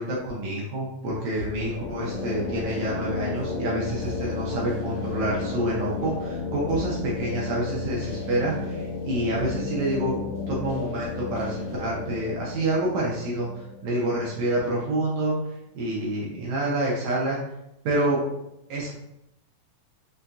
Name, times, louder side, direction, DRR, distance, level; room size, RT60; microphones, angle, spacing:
voice 1, 0.0-15.3 15.7-17.4 17.8-18.2 18.7-18.9, right 1 dB, 80° right, -5 dB, 1.7 m, -28 dB
sound 1, 1.4-15.0, left 4 dB, 80° left, 1.5 m, -33 dB
5.5 x 2.6 x 2.3 m, 0.84 s
omnidirectional pair, 4.0 m